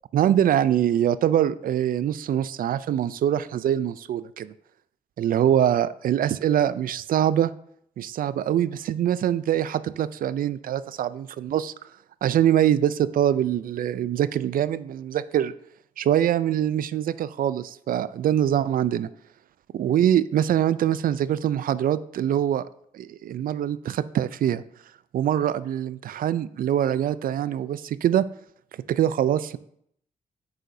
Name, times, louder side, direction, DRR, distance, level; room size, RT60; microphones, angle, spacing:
voice 1, 0.1-4.5 5.2-7.5 8.0-11.7 12.2-15.5 16.0-19.1 19.7-22.7 22.9-24.6 25.1-28.3 28.9-29.6, right 10 dB, 65° right, 16 dB, 0.4 m, -23 dB
9.1 x 6.5 x 2.7 m, 0.70 s
supercardioid pair, 55°, 16 cm